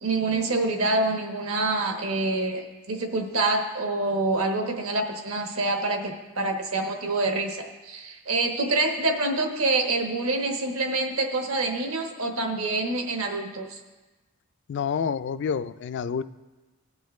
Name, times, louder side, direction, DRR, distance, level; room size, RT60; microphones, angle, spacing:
voice 1, 0.0-13.8, right 2 dB, 75° right, 4 dB, 1.2 m, -26 dB
voice 2, 14.7-16.2, left 6 dB, 55° left, 14 dB, 0.3 m, -28 dB
18.0 x 6.9 x 3.1 m, 1.2 s
head